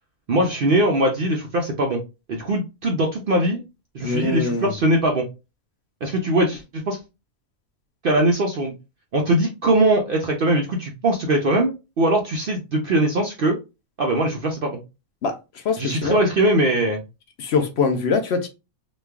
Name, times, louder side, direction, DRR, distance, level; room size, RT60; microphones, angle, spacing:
voice 1, 0.3-2.0 2.3-3.6 3.9-5.2 6.0-7.0 8.0-8.7 9.1-13.6 14.0-14.8 15.8-17.0, right 1 dB, 65° right, 0.5 m, -21 dB
voice 2, 4.0-4.7 15.2-15.4 15.6-16.2 17.4-18.5, left 4 dB, 60° left, 0.7 m, -23 dB
3.0 x 2.3 x 3.4 m
omnidirectional pair, 1.6 m